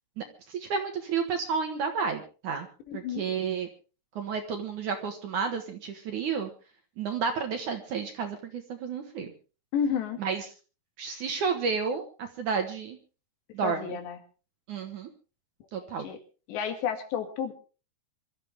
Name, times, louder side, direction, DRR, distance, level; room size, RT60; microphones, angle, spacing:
voice 1, 0.2-2.7 2.9-3.7 4.2-6.5 7.0-9.3 10.2-10.4 11.0-13.0 13.5-13.9 14.7-15.1 15.7-16.1, right 5 dB, 60° right, 6 dB, 2.3 m, -31 dB
voice 2, 2.9-3.2 9.7-10.2 13.6-14.2 15.7-16.2 16.5-17.5, left 7 dB, 80° left, 7 dB, 4.3 m, -31 dB
25.5 x 13.0 x 3.5 m, 0.35 s
omnidirectional pair, 5.0 m